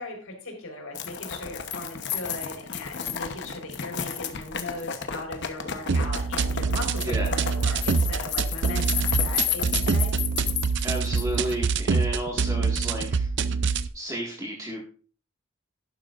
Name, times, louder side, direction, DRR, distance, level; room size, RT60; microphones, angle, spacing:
voice 1, 0.0-10.1, left 2 dB, 85° left, 2 dB, 4.1 m, -38 dB
sound 1, 0.9-11.5, left 8 dB, 60° left, 1.0 m, -32 dB
sound 2, 5.9-13.9, right 4 dB, 60° right, 0.6 m, -25 dB
voice 2, 7.0-7.4 10.8-13.3 13.9-14.8, right 1 dB, 15° right, -2 dB, 1.9 m, -32 dB
11.5 x 11.5 x 2.5 m, 0.40 s
head